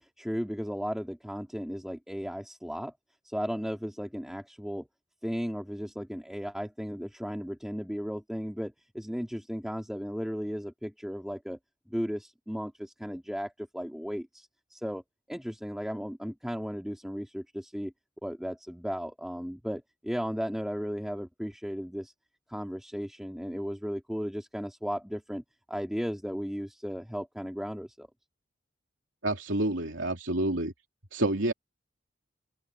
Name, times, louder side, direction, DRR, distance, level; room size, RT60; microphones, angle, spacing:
voice 1, 0.0-2.9 3.2-4.9 5.2-11.6 11.9-15.0 15.3-17.9 18.2-22.1 22.5-25.4 25.7-28.1, equal, ahead, 3.2 m, -35 dB
voice 2, 29.2-30.7 31.1-31.5, right 1 dB, 75° right, 2.9 m, -28 dB
head